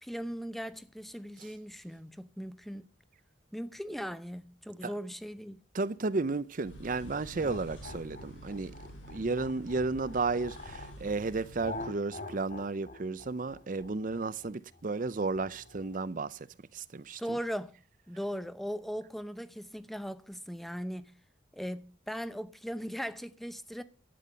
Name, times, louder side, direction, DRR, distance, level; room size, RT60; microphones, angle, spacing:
voice 1, 0.0-2.8 3.5-5.6 17.2-17.7 18.1-21.1 21.5-23.8, equal, ahead, 0.7 m, -38 dB
voice 2, 5.7-8.7 9.1-16.5 16.7-17.2, right 3 dB, 40° right, 0.5 m, -33 dB
sound 1, 6.6-11.9, equal, 75° left, 5.7 m, -48 dB
sound 2, 7.3-11.0 11.6-16.1, left 2 dB, 45° left, 3.7 m, -45 dB
12.0 x 9.2 x 6.7 m
head